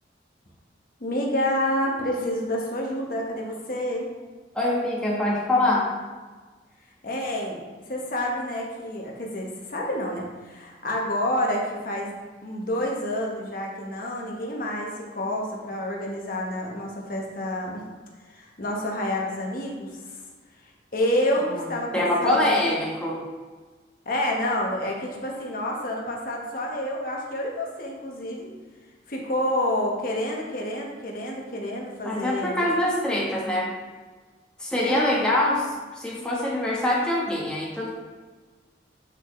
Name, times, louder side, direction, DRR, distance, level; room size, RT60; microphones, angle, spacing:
voice 1, 1.0-4.1 7.0-7.6 7.9-17.8 18.3-19.9 20.9-22.5 24.0-28.5 29.1-32.7 34.8-35.0, left 1 dB, 50° left, -1 dB, 1.1 m, -28 dB
voice 2, 4.5-5.9 21.4-21.7 21.9-23.2 32.0-33.7 34.6-37.9, left 1 dB, 5° left, -5 dB, 1.2 m, -24 dB
8.8 x 4.0 x 3.1 m, 1.4 s
head